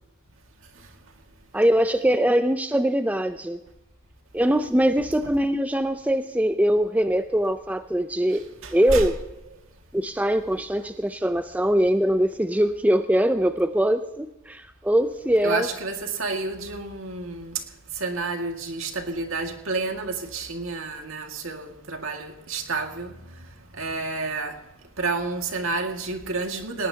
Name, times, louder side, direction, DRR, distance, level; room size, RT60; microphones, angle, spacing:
voice 1, 1.5-3.6 4.3-9.2 9.9-15.7, right 1 dB, 5° right, 0.5 m, -22 dB
voice 2, 8.3-9.1 9.5-9.6 15.4-17.6 17.9-23.2 23.7-24.6 25.0-26.9, right 3 dB, 75° right, 2.0 m, -30 dB
18.5 x 18.5 x 2.8 m
head